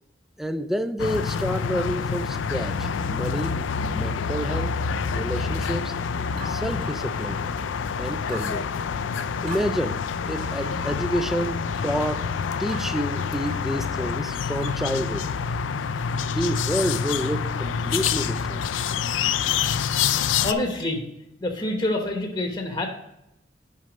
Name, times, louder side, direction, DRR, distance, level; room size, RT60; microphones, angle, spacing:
voice 1, 0.4-3.6 3.9-4.7 5.1-5.9 6.4-7.4 8.0-8.7 9.4-12.3 12.6-15.3 16.2-18.6, equal, ahead, 10 dB, 0.3 m, -29 dB
sound 1, 1.0-20.5, left 6 dB, 85° left, 0.4 m, -27 dB
sound 2, 6.4-7.5 8.3-8.6 9.5-9.7 10.6-10.9 11.7-12.0 12.7-13.0 13.5-13.7 14.6-14.9, right 3 dB, 40° right, 1.9 m, -42 dB
voice 2, 20.4-21.0 21.4-22.9, left 2 dB, 20° left, 2 dB, 1.0 m, -26 dB
6.3 x 5.4 x 5.0 m, 0.86 s
head